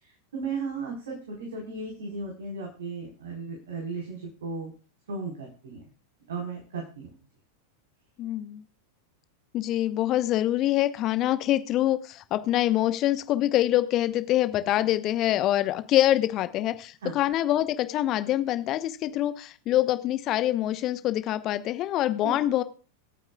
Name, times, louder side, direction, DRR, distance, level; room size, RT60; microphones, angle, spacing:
voice 1, 0.0-4.7 5.1-5.8 6.3-7.1 17.0-17.2 22.2-22.4, right 4 dB, 60° right, 0 dB, 4.2 m, -35 dB
voice 2, 8.2-8.6 9.5-22.6, left 13 dB, 35° left, 12 dB, 1.0 m, -25 dB
26.5 x 9.0 x 2.3 m, 0.38 s
figure-of-eight pair, 90°, 0 cm